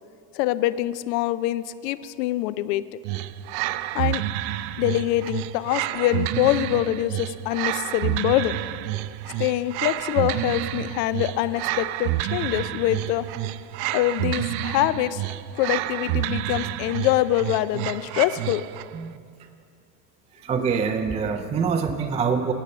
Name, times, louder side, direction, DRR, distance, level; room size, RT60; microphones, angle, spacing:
voice 1, 0.3-2.8 3.9-4.2 4.8-8.6 9.3-13.3 13.9-15.2 15.6-18.6, left 14 dB, 75° left, 16 dB, 0.6 m, -24 dB
sound 1, 3.0-19.0, right 14 dB, 65° right, 0.5 m, -29 dB
voice 2, 20.3-22.5, right 6 dB, 15° right, 6 dB, 0.3 m, -25 dB
10.0 x 6.6 x 8.2 m, 2.3 s
supercardioid pair, 100°, 50 cm